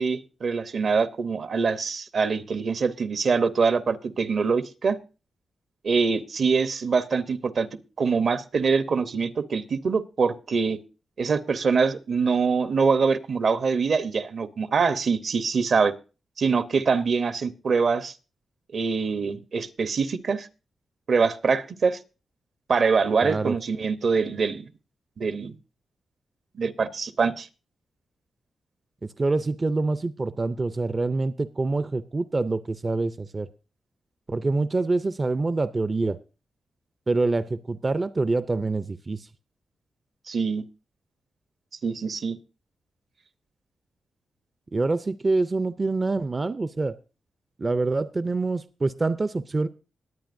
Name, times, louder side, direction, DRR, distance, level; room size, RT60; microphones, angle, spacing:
voice 1, 0.0-5.0 5.8-7.7 8.0-10.8 11.2-15.9 16.4-18.1 18.7-20.5 21.1-22.0 22.7-24.7 25.2-25.5 26.5-27.5 40.3-40.6 41.8-42.4, right 5 dB, 60° right, 12 dB, 0.8 m, -24 dB
voice 2, 23.2-23.5 29.0-33.5 34.3-36.2 37.1-39.3 44.7-46.9 47.6-49.7, right 3 dB, 30° right, 13 dB, 0.5 m, -26 dB
20.0 x 8.7 x 2.6 m, 0.33 s
cardioid pair, 80°, 0 cm